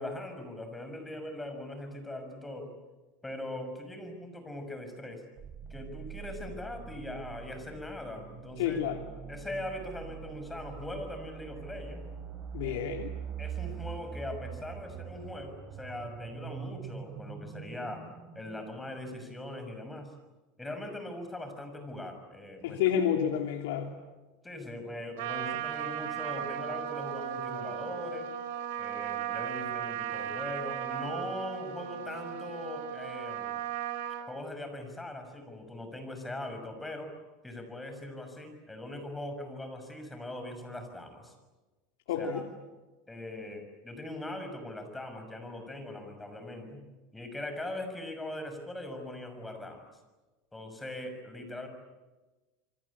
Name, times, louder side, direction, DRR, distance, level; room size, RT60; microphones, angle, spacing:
voice 1, 0.0-2.7 3.2-5.2 5.7-8.8 9.3-12.0 12.6-12.9 13.4-18.1 18.3-20.1 20.6-22.8 24.4-28.3 28.8-33.6 34.3-37.1 37.4-41.3 42.1-42.4 43.1-46.8 47.1-49.9 50.5-51.7, left 1 dB, 10° left, 6 dB, 6.4 m, -41 dB
sound 1, 5.4-19.1, right 7 dB, 30° right, 4.5 m, -43 dB
voice 2, 8.6-9.0 12.5-13.1 22.6-23.9 42.1-42.4, left 9 dB, 85° left, 3 dB, 2.9 m, -29 dB
Trumpet, 25.2-34.3, right 10 dB, 75° right, 4.8 m, -36 dB
28.5 x 24.5 x 8.7 m, 1.2 s
supercardioid pair, 140°, 0 cm